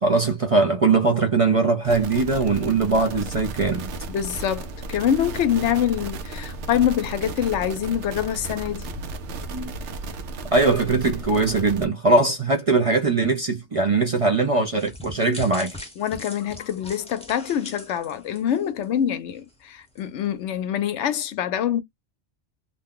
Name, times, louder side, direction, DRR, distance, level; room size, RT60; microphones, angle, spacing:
voice 1, 0.0-3.9 9.5-9.7 10.5-15.8, right 3 dB, 40° right, 0.5 m, -21 dB
sound 1, 1.8-11.9, right 3 dB, 75° right, 0.9 m, -34 dB
voice 2, 4.1-8.9 16.0-21.8, left 9 dB, 80° left, 0.9 m, -25 dB
sound 2, 14.8-19.0 19.4-19.5 20.0-20.1, left 1 dB, 5° left, 0.7 m, -41 dB
2.6 x 2.2 x 3.6 m
omnidirectional pair, 1.2 m